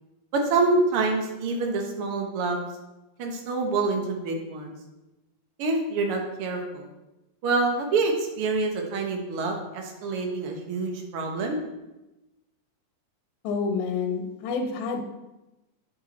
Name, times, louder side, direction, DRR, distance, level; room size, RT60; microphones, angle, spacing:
voice 1, 0.3-2.6 3.2-4.7 5.6-6.9 7.4-11.6, right 3 dB, 75° right, 2 dB, 1.2 m, -26 dB
voice 2, 13.4-15.0, left 4 dB, 85° left, 4 dB, 2.5 m, -28 dB
8.9 x 7.0 x 4.1 m, 1.0 s
omnidirectional pair, 4.3 m